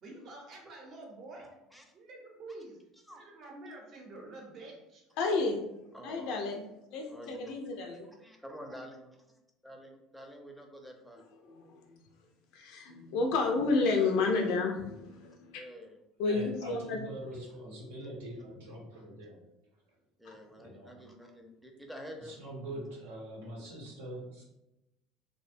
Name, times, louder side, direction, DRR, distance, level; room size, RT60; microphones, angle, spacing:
voice 1, 0.0-1.5 1.9-2.8 3.1-5.0, right 2 dB, 50° right, 0 dB, 0.7 m, -48 dB
voice 2, 1.4-1.8 3.1-3.3 5.9-6.4 7.1-7.7 8.0-9.1 9.6-11.2 15.5-16.0 20.2-22.4, equal, ahead, 1 dB, 0.5 m, -48 dB
voice 3, 5.2-5.6 6.0-6.6 6.9-8.1 11.5-12.0 12.5-15.6 16.2-17.0 20.3-20.4, left 3 dB, 70° left, 2 dB, 0.3 m, -31 dB
voice 4, 16.3-19.4 20.5-20.9 22.2-24.4, right 1 dB, 85° right, -2 dB, 0.8 m, -43 dB
2.5 x 2.1 x 2.5 m, 0.90 s
hypercardioid pair, 80°, 0 cm